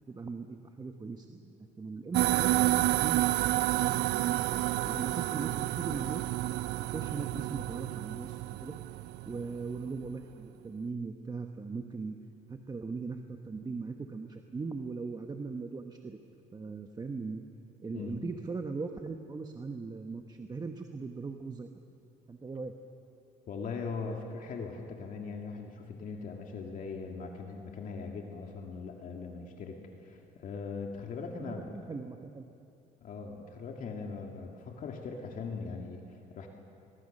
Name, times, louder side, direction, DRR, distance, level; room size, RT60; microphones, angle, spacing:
voice 1, 0.1-6.2 6.9-8.8 9.3-12.2 12.5-16.2 16.5-17.4 17.8-21.7 22.3-22.7 31.4-32.4, right 4 dB, 25° right, 5 dB, 1.1 m, -39 dB
sound 1, 2.1-9.8, right 16 dB, 80° right, 0.4 m, -30 dB
voice 2, 23.5-31.8 33.0-36.5, left 4 dB, 50° left, 2 dB, 2.2 m, -40 dB
22.0 x 22.0 x 6.6 m, 2.6 s
cardioid pair, 110°, 17 cm